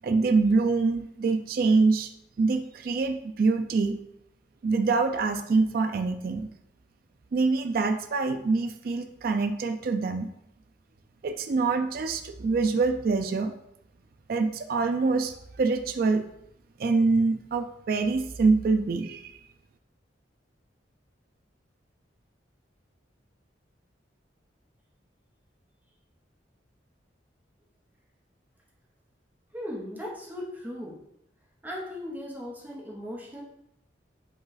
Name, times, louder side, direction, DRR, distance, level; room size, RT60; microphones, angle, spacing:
voice 1, 0.0-2.1 2.4-4.0 4.6-6.5 7.3-10.3 11.2-13.5 14.3-16.2 16.8-19.3, right 4 dB, 50° right, 7 dB, 0.3 m, -25 dB
voice 2, 29.5-31.0 31.6-33.4, left 1 dB, 10° right, -4 dB, 0.8 m, -37 dB
5.1 x 2.4 x 3.9 m, 0.77 s
head